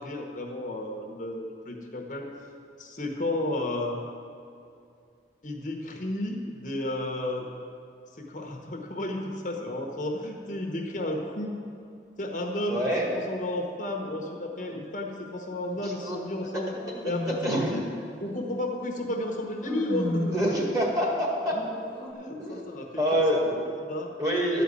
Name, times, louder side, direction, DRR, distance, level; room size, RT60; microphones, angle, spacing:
voice 1, 0.0-2.3 2.8-4.0 5.4-7.5 8.2-11.5 12.2-12.8 13.1-16.8 17.0-17.9 18.2-20.4 22.1-23.2 23.8-24.1, left 1 dB, 45° left, 1 dB, 1.1 m, -32 dB
voice 2, 12.7-13.1 15.8-16.2 17.4-17.7 20.3-21.6 22.4-22.6 22.9-23.7 24.2-24.6, equal, 20° right, -2 dB, 1.8 m, -26 dB
sound 1, 16.3-17.8 19.1-20.6 21.5-22.1, left 1 dB, 10° left, 1.3 m, -35 dB
12.0 x 5.2 x 8.3 m, 2.4 s
head